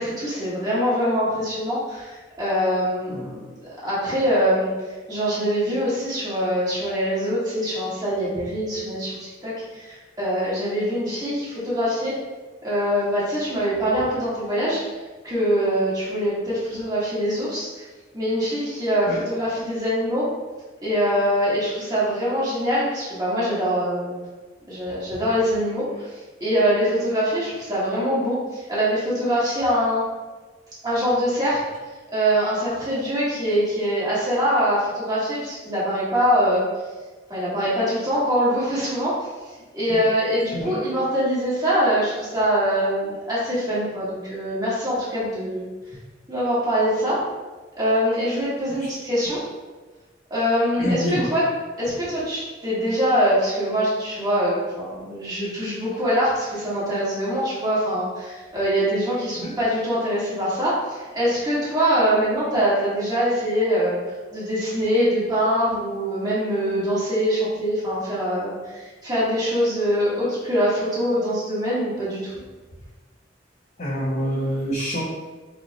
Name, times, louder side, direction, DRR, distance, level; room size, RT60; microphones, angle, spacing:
voice 1, 0.0-3.4 3.8-4.7 5.1-12.1 12.6-14.8 15.2-17.8 18.1-20.2 20.8-24.2 24.7-26.1 26.4-30.0 30.8-31.6 32.1-36.6 37.3-39.3 39.7-45.6 46.3-47.2 47.8-49.4 50.3-51.4 51.8-64.0 64.3-72.3, equal, 20° right, -10 dB, 1.3 m, -23 dB
voice 2, 50.8-51.3 59.4-59.5 73.8-75.0, equal, 40° left, -6 dB, 0.5 m, -26 dB
4.8 x 2.0 x 2.9 m, 1.3 s
head